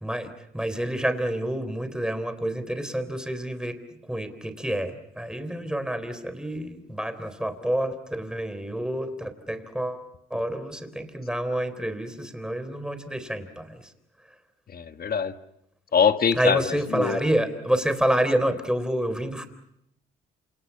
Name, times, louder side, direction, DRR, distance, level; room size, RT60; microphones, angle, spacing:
voice 1, 0.0-3.8 4.1-10.0 10.3-13.9 16.4-19.5, right 1 dB, 5° right, 11 dB, 3.6 m, -28 dB
voice 2, 14.7-15.3 15.9-17.2, left 7 dB, 50° left, 10 dB, 1.5 m, -23 dB
28.0 x 27.5 x 5.6 m, 0.77 s
cardioid pair, 90°, 20 cm